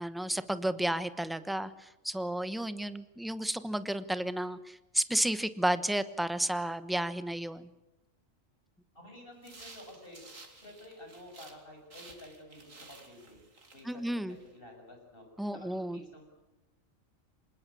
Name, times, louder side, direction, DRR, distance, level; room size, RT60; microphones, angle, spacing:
voice 1, 0.0-7.7 13.9-14.3 15.4-16.0, right 1 dB, ahead, 12 dB, 0.9 m, -32 dB
voice 2, 8.9-10.2 10.6-13.4 13.7-15.2 15.5-16.2, left 1 dB, 45° left, 3 dB, 7.2 m, -51 dB
sound 1, 9.4-11.6 11.9-14.5, right 3 dB, 80° right, 3.4 m, -53 dB
26.5 x 20.0 x 8.5 m, 1.0 s
omnidirectional pair, 1.3 m